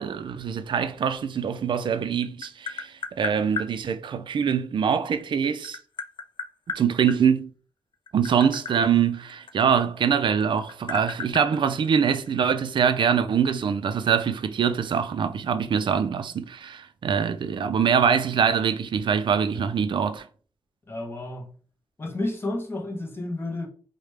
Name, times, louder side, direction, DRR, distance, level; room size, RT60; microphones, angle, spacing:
voice 1, 0.0-5.8 6.7-7.5 8.1-20.3, right 7 dB, 55° right, 0.4 m, -24 dB
Tap, 1.8-3.7 5.0-7.2 7.9-10.1 10.4-12.4, left 5 dB, 55° left, 0.4 m, -35 dB
voice 2, 20.9-21.5 22.0-23.7, left 2 dB, 25° left, 0.8 m, -31 dB
4.8 x 2.1 x 3.2 m
wide cardioid pair, 165°, 10 cm